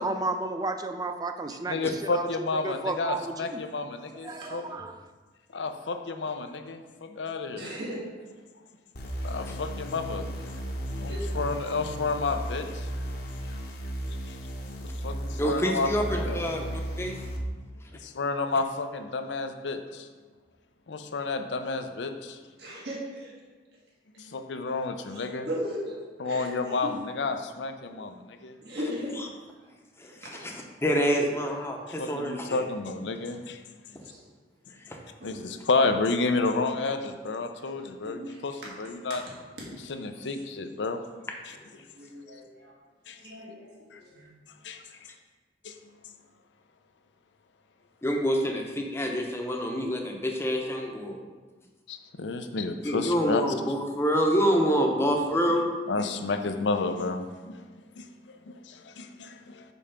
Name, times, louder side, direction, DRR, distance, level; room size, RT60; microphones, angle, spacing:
voice 1, 0.0-3.6 4.2-5.0, right 2 dB, 20° right, 8 dB, 0.4 m, -33 dB
voice 2, 1.7-4.6 5.5-7.6 9.2-10.3 11.0-12.9 14.1-14.2 15.0-16.4 18.0-20.1 20.9-22.4 24.2-25.5 26.2-26.9 27.2-28.2 28.4-28.5 31.9-33.6 35.2-39.2 39.9-41.0 41.5-41.6 43.1-43.2 43.9-44.0 44.6-44.8 45.6-45.8 51.9-53.4 55.9-57.6 58.0-58.1 58.7-59.6, left 3 dB, 80° left, 7 dB, 0.6 m, -30 dB
voice 3, 4.2-4.7 7.5-8.0 10.9-11.3 15.0-15.1 22.6-23.3 25.0-26.0 26.2-26.9 28.6-29.1 30.0-30.3 31.1-31.3 34.0-34.2 35.2-35.4 36.8-37.0 37.7-38.7 40.3-40.4 41.5-41.6 41.9-42.7 43.2-44.3, equal, 65° right, -5 dB, 1.8 m, -38 dB
sound 1, 8.9-17.4, equal, 60° left, 1.0 m, -35 dB
voice 4, 15.4-17.1 30.0-30.1 30.4-30.5 30.8-32.6 34.9-35.0 48.0-51.2 52.8-55.7, equal, 15° left, 1 dB, 0.8 m, -26 dB
5.4 x 4.8 x 5.6 m, 1.3 s
head